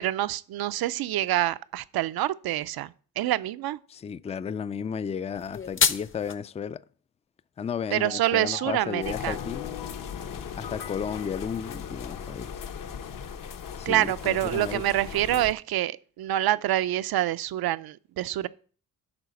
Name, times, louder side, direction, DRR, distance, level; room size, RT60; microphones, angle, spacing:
voice 1, 0.0-3.8 7.9-9.4 13.9-18.5, right 14 dB, 75° right, 0.6 m, -26 dB
voice 2, 3.9-6.8 7.6-9.7 10.6-12.5 13.8-14.8, left 7 dB, 20° left, 0.3 m, -33 dB
sound 1, 5.3-6.3, left 6 dB, 35° left, 0.7 m, -26 dB
sound 2, 8.0-12.3, left 13 dB, 85° left, 0.8 m, -43 dB
sound 3, 9.0-15.5, left 7 dB, 60° left, 1.0 m, -38 dB
11.0 x 4.0 x 6.9 m
cardioid pair, 85°, 37 cm